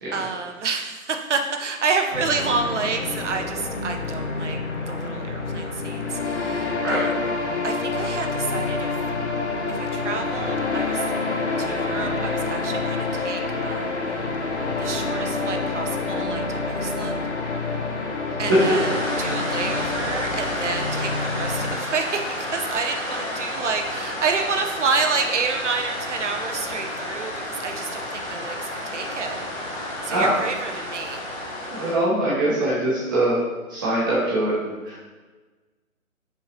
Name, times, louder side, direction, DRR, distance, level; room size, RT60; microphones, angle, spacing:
voice 1, 0.1-4.6 4.9-7.1 7.6-8.9 9.7-11.1 11.6-13.9 14.8-17.2 18.4-18.9 19.2-29.4 30.0-31.2, right 4 dB, 55° right, 5 dB, 0.6 m, -29 dB
sound 1, 2.1-21.8, left 3 dB, 50° left, 0.6 m, -27 dB
sound 2, 18.5-31.9, left 1 dB, 25° left, 1.0 m, -31 dB
voice 2, 31.7-33.4 33.7-35.0, right 1 dB, 15° right, -8 dB, 0.8 m, -22 dB
5.6 x 2.8 x 2.9 m, 1.3 s
figure-of-eight pair, 140°, 43 cm